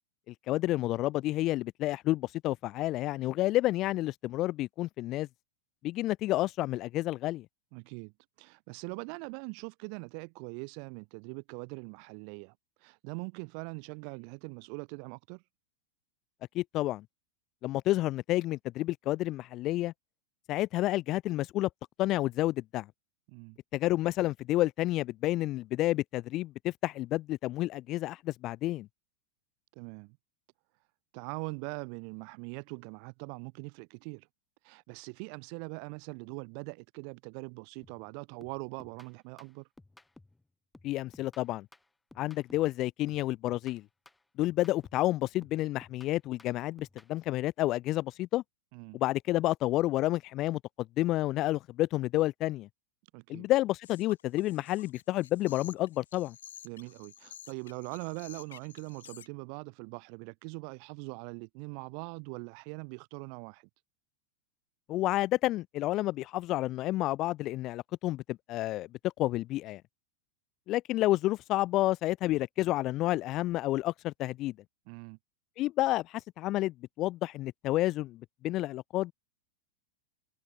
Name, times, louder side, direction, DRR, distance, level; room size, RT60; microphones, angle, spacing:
voice 1, 0.3-5.3 5.8-7.5 16.5-17.0 17.6-19.9 20.5-21.7 22.0-22.9 23.7-28.9 40.8-41.7 42.2-43.8 44.4-48.4 48.9-52.7 53.3-56.4 64.9-68.9 69.2-69.8 70.7-74.5 75.6-79.1, left 16 dB, 35° left, 0.5 m, -30 dB
voice 2, 7.7-8.1 8.4-12.5 12.8-15.4 23.3-23.6 29.7-30.2 31.1-34.3 34.6-39.7 48.7-49.0 53.1-53.5 56.6-63.7 74.9-75.2, right 40 dB or more, 45° right, 1.6 m, -42 dB
sound 1, 37.8-38.1 38.4-40.4 40.7-42.8 43.1-45.1 45.4-47.2, left 2 dB, 5° left, 2.7 m, -58 dB
sound 2, 53.8-59.3, left 10 dB, 65° left, 2.0 m, -52 dB
figure-of-eight pair, 90°, 0 cm